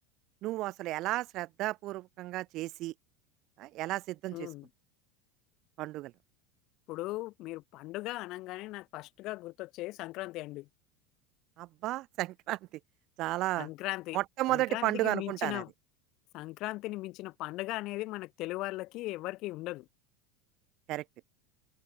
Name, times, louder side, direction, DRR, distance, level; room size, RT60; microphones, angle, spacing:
voice 1, 0.4-2.9 3.6-4.5 5.8-6.1 11.6-12.6 13.2-13.7 14.1-15.6 20.9-21.0, right 17 dB, 55° right, 0.5 m, -33 dB
voice 2, 4.3-4.7 6.9-10.7 13.6-14.2 14.5-15.7 16.3-19.9, left 19 dB, 55° left, 0.5 m, -38 dB
supercardioid pair, 110°, 0 cm